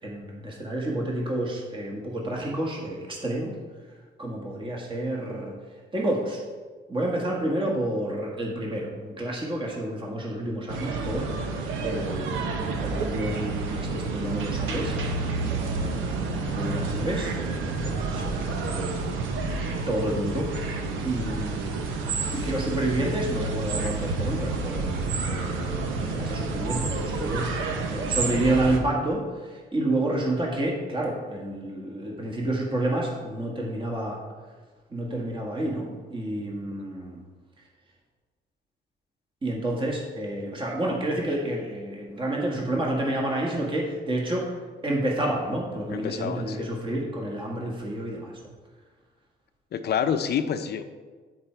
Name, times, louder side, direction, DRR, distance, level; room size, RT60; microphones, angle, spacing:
voice 1, 0.0-3.5 4.2-5.6 5.9-6.4 6.9-15.2 15.5-21.8 22.3-34.2 34.9-37.2 39.4-44.5 44.8-48.3, right 1 dB, 25° right, -2 dB, 1.7 m, -30 dB
sound 1, 10.7-28.8, right 3 dB, 90° right, 0.9 m, -29 dB
voice 2, 45.9-46.7 49.7-50.8, left 8 dB, 55° left, 9 dB, 0.7 m, -28 dB
9.8 x 4.6 x 4.5 m, 1.4 s
cardioid pair, 90°, 20 cm